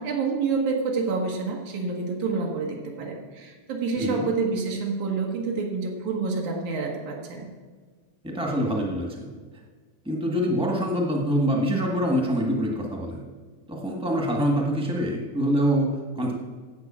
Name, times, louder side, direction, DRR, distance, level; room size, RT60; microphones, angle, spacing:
voice 1, 0.0-7.5, right 4 dB, 90° right, -1 dB, 2.9 m, -28 dB
voice 2, 4.0-4.3 8.2-9.3 10.0-13.2 13.7-16.3, equal, 5° right, 0 dB, 0.7 m, -25 dB
9.6 x 7.9 x 7.5 m, 1.5 s
omnidirectional pair, 3.3 m